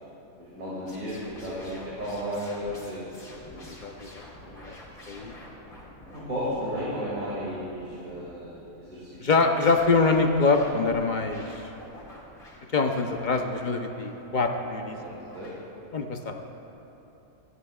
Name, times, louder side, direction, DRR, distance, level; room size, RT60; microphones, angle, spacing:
voice 1, 0.4-3.7 6.1-9.5 14.9-15.5, equal, 70° right, -9 dB, 2.8 m, -34 dB
sound 1, 0.9-15.6, left 1 dB, 75° left, 2.9 m, -48 dB
voice 2, 3.7-4.2 4.6-4.8 5.1-5.3 9.2-11.4 12.7-15.0 15.9-16.3, left 3 dB, 45° left, 4 dB, 0.7 m, -24 dB
24.5 x 11.0 x 2.4 m, 3.0 s
omnidirectional pair, 1.5 m